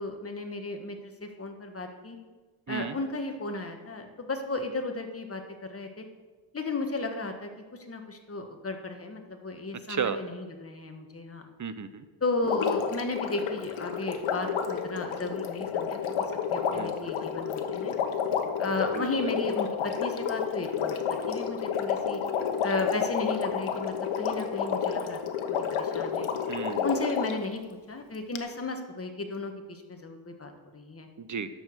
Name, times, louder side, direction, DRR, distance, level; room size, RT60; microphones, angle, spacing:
voice 1, 0.0-2.2 2.7-6.0 6.5-11.5 12.2-16.0 16.5-17.9 18.6-20.9 21.3-22.2 22.6-25.2 25.5-26.3 26.8-27.6 27.9-31.1, left 2 dB, 30° left, 5 dB, 1.4 m, -34 dB
voice 2, 11.6-12.0 16.7-16.9 18.9-19.3 26.5-26.9 31.2-31.5, right 6 dB, 40° right, 11 dB, 0.8 m, -33 dB
Water, 12.4-27.4 28.4-28.5, left 7 dB, 90° left, 1.1 m, -30 dB
11.0 x 7.0 x 6.6 m, 1.3 s
cardioid pair, 95°, 48 cm